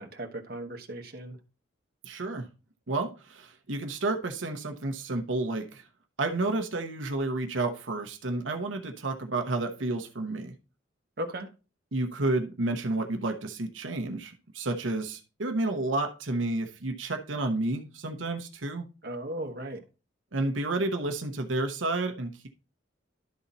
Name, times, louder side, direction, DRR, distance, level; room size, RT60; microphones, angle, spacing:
voice 1, 0.0-1.4 11.2-11.5 19.0-19.8, right 1 dB, 55° right, 4 dB, 1.1 m, -36 dB
voice 2, 2.0-2.5 2.9-5.9 6.2-10.5 11.9-18.9 20.3-22.5, right 2 dB, 80° right, 4 dB, 0.9 m, -31 dB
11.5 x 4.0 x 4.1 m, 0.32 s
head